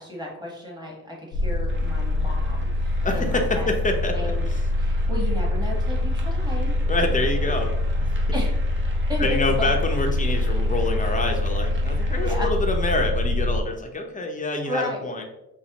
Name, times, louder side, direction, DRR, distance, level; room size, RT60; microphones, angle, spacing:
voice 1, 0.0-3.7 4.1-4.5 4.8-6.8 8.3-8.5 9.1-9.3 9.6-9.7 12.2-12.5 14.6-15.1, left 1 dB, 10° right, -2 dB, 1.4 m, -33 dB
sound 1, 1.3-13.6, left 2 dB, 85° left, 0.6 m, -24 dB
sound 2, 1.7-12.3, right 2 dB, 30° right, 0.8 m, -46 dB
voice 2, 3.0-4.6 6.9-7.7 8.0-8.1 9.2-15.3, left 2 dB, 20° left, 3 dB, 0.6 m, -26 dB
5.4 x 2.0 x 2.9 m, 0.91 s
cardioid pair, 85°, 40 cm